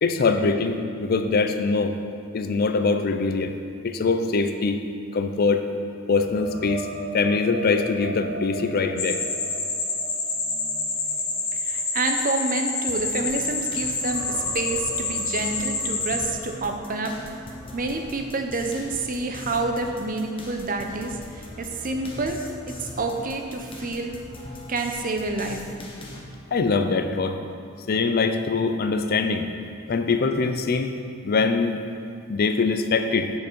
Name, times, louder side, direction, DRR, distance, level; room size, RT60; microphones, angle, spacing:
voice 1, 0.0-1.9 2.3-3.5 3.8-4.8 5.1-5.7 6.1-6.9 7.1-9.2 26.5-27.4 27.9-29.5 29.9-30.9 31.2-31.8 32.3-33.3, left 4 dB, 45° left, 7 dB, 0.4 m, -23 dB
sound 1, 6.1-13.5 13.9-17.7 18.1-18.3 21.7-21.8, right 3 dB, 80° right, 1.3 m, -39 dB
sound 2, 9.0-16.3, left 3 dB, 65° left, 1.6 m, -28 dB
voice 2, 11.6-17.2 17.7-24.1 24.7-25.6, right 3 dB, 40° right, 4 dB, 0.7 m, -28 dB
sound 3, 12.9-26.2, left 1 dB, 25° left, 1.0 m, -40 dB
7.9 x 6.6 x 4.5 m, 2.4 s
head